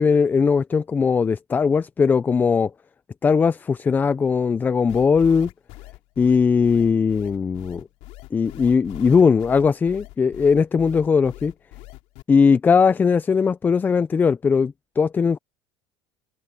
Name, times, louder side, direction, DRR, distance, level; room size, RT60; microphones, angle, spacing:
voice 1, 0.0-2.7 3.2-5.5 6.2-7.9 8.3-11.5 12.3-15.4, left 5 dB, 15° left, 0.3 m, -19 dB
sound 1, 4.9-12.2, left 21 dB, 70° left, 3.2 m, -41 dB
cardioid pair, 150°, 12 cm